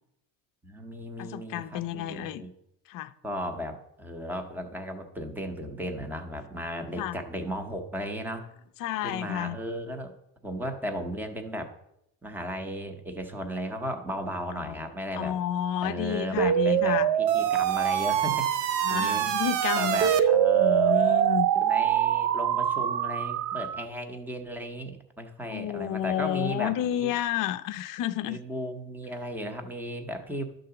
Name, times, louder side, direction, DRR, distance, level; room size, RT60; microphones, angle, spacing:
voice 1, 0.6-2.5 3.2-8.5 9.0-10.2 10.4-11.7 12.2-15.4 15.8-19.3 19.8-21.0 21.6-27.1 28.2-30.4, equal, 5° right, 0.7 m, -35 dB
voice 2, 1.2-2.4 2.9-3.1 7.0-7.2 8.8-9.6 14.6-14.8 15.1-17.1 18.8-20.2 20.6-21.5 25.5-28.4, left 11 dB, 45° left, 0.5 m, -30 dB
sound 1, 16.4-23.8, right 10 dB, 65° right, 0.7 m, -24 dB
11.0 x 3.9 x 6.8 m
cardioid pair, 150°, 48 cm